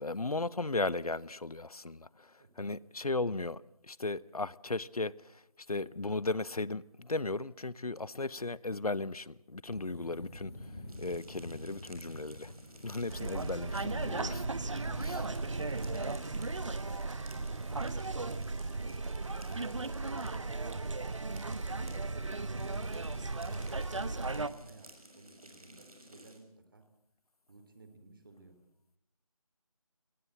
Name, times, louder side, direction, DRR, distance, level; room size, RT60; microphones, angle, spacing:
voice 1, 0.0-3.6 3.9-5.4 5.7-10.7 11.0-12.5 12.8-14.4 15.0-15.3, left 3 dB, 85° left, 0.8 m, -36 dB
sound 1, 9.7-24.5, left 1 dB, 45° left, 3.4 m, -50 dB
sound 2, 10.9-26.4, right 1 dB, 75° right, 6.1 m, -56 dB
sound 3, 13.1-24.5, right 3 dB, 55° right, 1.1 m, -36 dB
voice 2, 15.1-19.5 20.0-26.8 27.5-28.6, right 3 dB, 35° right, 3.0 m, -56 dB
23.0 x 18.5 x 7.7 m
figure-of-eight pair, 165°, 19 cm